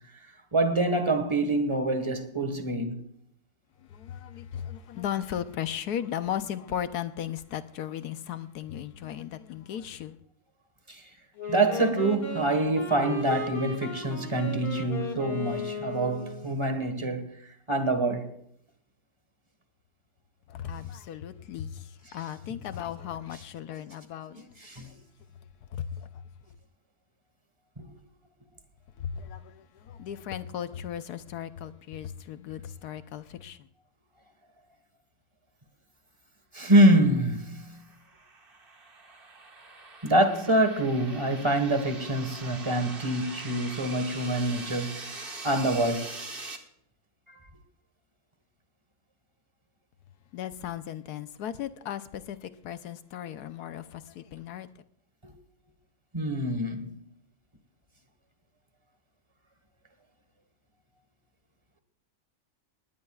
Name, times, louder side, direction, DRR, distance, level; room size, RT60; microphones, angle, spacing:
voice 1, 0.5-3.0 10.9-11.0 11.5-17.3 17.7-18.4 24.3-24.9 27.8-27.9 36.5-37.6 40.0-46.1 55.2-55.3 56.1-56.9, right 1 dB, 20° right, 1.5 m, -26 dB
voice 2, 3.9-10.2 20.5-25.0 25.7-26.2 26.5-26.6 29.0-33.7 50.3-54.7, left 10 dB, 85° left, 1.3 m, -36 dB
Wind instrument woodwind instrument, 11.4-16.6, left 3 dB, 40° left, 2.5 m, -36 dB
sound 1, 37.6-46.6, right 3 dB, 35° right, 1.7 m, -43 dB
19.5 x 17.5 x 2.4 m
omnidirectional pair, 1.7 m